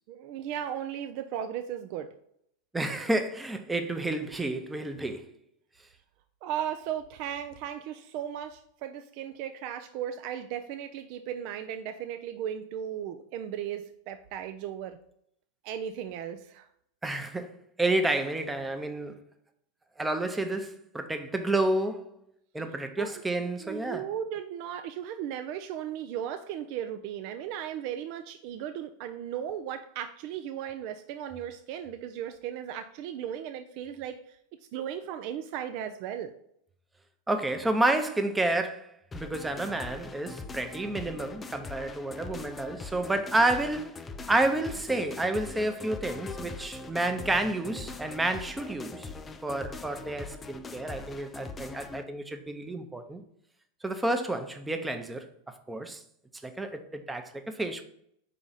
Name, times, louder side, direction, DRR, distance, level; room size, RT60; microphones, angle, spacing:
voice 1, 0.1-2.1 6.4-15.0 15.6-16.7 23.0-34.4 34.7-36.3, right 9 dB, 55° right, 0.4 m, -36 dB
voice 2, 2.7-5.3 17.0-19.2 20.0-22.1 22.5-24.1 37.3-49.1 49.4-53.2 53.8-56.0 56.4-57.8, right 2 dB, 10° right, 0.7 m, -30 dB
sound 1, 39.1-52.0, left 3 dB, 20° left, 0.5 m, -42 dB
4.9 x 3.9 x 5.6 m
hypercardioid pair, 115°, 0 cm